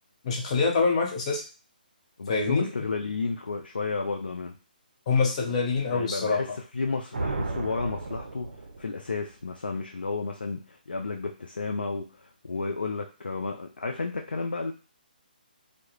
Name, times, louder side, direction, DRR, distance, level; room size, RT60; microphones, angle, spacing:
voice 1, 0.2-1.4 2.3-2.7 5.1-6.4, left 4 dB, 40° left, 0 dB, 0.8 m, -25 dB
voice 2, 2.2-4.5 5.9-14.7, left 3 dB, 85° left, 3 dB, 0.4 m, -32 dB
sound 1, 7.1-9.1, right 2 dB, 80° right, 0.4 m, -34 dB
2.3 x 2.1 x 3.0 m, 0.35 s
figure-of-eight pair, 145°, 5 cm